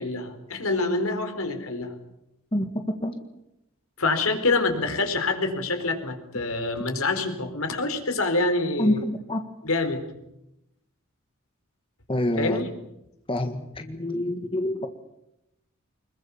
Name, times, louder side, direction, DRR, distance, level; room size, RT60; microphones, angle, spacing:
voice 1, 0.0-2.0 4.0-9.0 9.6-10.0 12.4-12.7, left 3 dB, 85° left, 6 dB, 4.4 m, -26 dB
voice 2, 8.8-9.4 12.1-12.6 13.3-14.9, left 1 dB, 25° left, 6 dB, 1.7 m, -26 dB
25.5 x 21.5 x 7.2 m, 0.86 s
head